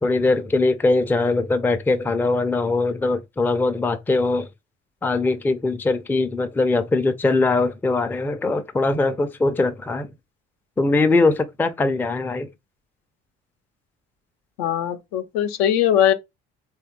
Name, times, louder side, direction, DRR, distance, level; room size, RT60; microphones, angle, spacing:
voice 1, 0.0-4.5 5.0-10.1 10.8-12.5, left 3 dB, 5° left, 0.4 m, -21 dB
voice 2, 14.6-16.1, left 10 dB, 70° left, 0.6 m, -20 dB
3.2 x 2.4 x 2.9 m
hypercardioid pair, 55°, 35 cm